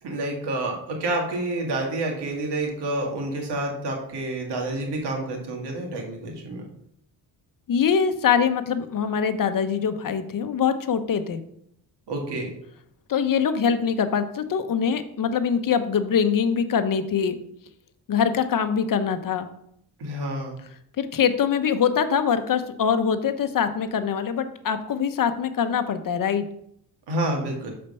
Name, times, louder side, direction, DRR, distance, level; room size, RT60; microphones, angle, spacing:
voice 1, 0.0-6.6 12.1-12.5 20.0-20.6 27.1-27.7, right 2 dB, 70° right, 1 dB, 1.9 m, -28 dB
voice 2, 7.7-11.4 13.1-17.3 18.1-19.5 21.0-26.5, left 7 dB, 50° left, 10 dB, 0.8 m, -23 dB
6.7 x 4.4 x 5.4 m, 0.73 s
cardioid pair, 70°, 42 cm